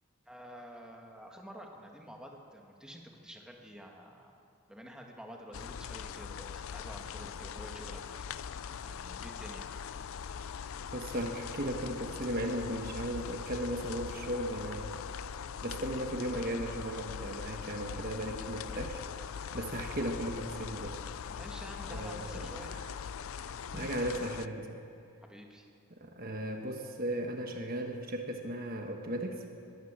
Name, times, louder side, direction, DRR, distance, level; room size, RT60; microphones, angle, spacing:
voice 1, 0.3-4.4 4.7-8.0 8.3-9.7 21.3-22.7 25.2-25.7, equal, 5° right, 1 dB, 1.8 m, -49 dB
sound 1, 5.5-24.5, left 7 dB, 65° left, 0.4 m, -41 dB
voice 2, 10.9-15.0 15.6-19.0 19.5-21.1 21.9-22.6 23.4-24.8 26.0-29.5, right 1 dB, 40° right, 3 dB, 1.3 m, -36 dB
21.5 x 16.5 x 7.4 m, 2.5 s
head